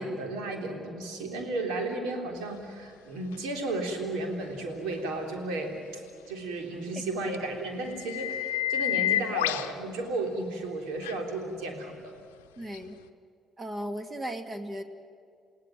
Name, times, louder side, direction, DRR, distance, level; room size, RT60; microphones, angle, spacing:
voice 1, 0.0-12.1, right 2 dB, 75° right, 2 dB, 3.6 m, -34 dB
sound 1, 3.3-3.4 7.3-7.4 7.8-9.7 11.0-11.1 12.7-12.8, left 13 dB, 85° left, 0.7 m, -29 dB
voice 2, 12.6-13.0 13.6-14.8, equal, 30° right, 7 dB, 2.3 m, -36 dB
29.5 x 17.0 x 9.2 m, 2.3 s
hypercardioid pair, 45°, 0 cm